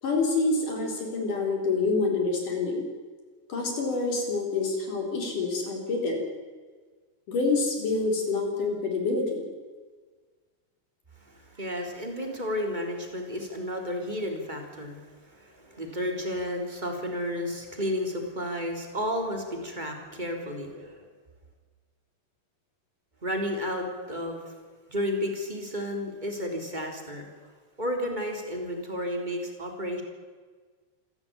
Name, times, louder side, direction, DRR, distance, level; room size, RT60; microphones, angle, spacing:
voice 1, 0.0-2.8 3.5-6.2 7.3-9.4 26.2-26.3, left 3 dB, 50° left, 2 dB, 5.4 m, -27 dB
voice 2, 11.3-21.1 23.2-24.5 24.9-27.3 27.8-30.0, equal, 10° right, 3 dB, 3.1 m, -32 dB
26.5 x 15.0 x 8.8 m, 1.5 s
omnidirectional pair, 4.8 m